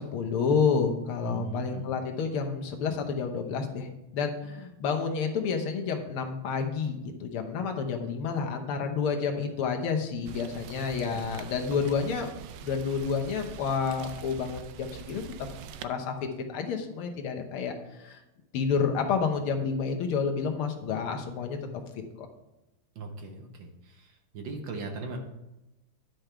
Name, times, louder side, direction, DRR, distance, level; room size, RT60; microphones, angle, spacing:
voice 1, 0.0-12.3 12.6-15.2 15.8-16.2 16.5-17.7 18.0-18.2 18.5-21.6 22.2-22.3, left 5 dB, 75° left, 3 dB, 1.9 m, -29 dB
voice 2, 1.2-1.9 11.1-11.3 22.9-25.2, right 3 dB, 65° right, 4 dB, 1.7 m, -38 dB
Rain, 10.2-15.8, right 9 dB, 90° right, 0.9 m, -44 dB
10.0 x 5.2 x 4.5 m, 0.95 s
omnidirectional pair, 2.4 m